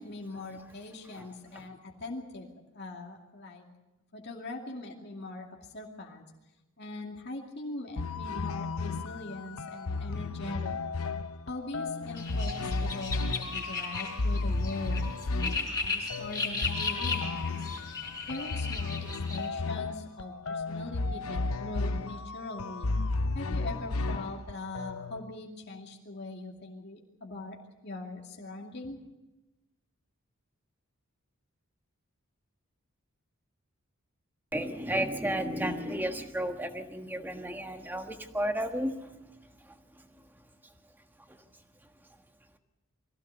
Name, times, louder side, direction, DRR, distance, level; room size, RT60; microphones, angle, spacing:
voice 1, 0.0-2.5 2.7-3.6 4.1-5.5 5.7-6.2 6.8-10.7 11.5-15.0 15.3-17.6 18.3-22.9 23.3-27.6 27.8-29.0, left 2 dB, 50° left, 0 dB, 2.5 m, -41 dB
sound 1, 8.0-25.2, left 3 dB, 80° left, 0.8 m, -33 dB
sound 2, 12.2-19.5, left 4 dB, 20° left, 4.0 m, -36 dB
voice 2, 34.5-40.1 41.3-41.4, right 1 dB, 10° right, 5 dB, 1.4 m, -33 dB
22.5 x 16.5 x 8.0 m, 1.0 s
head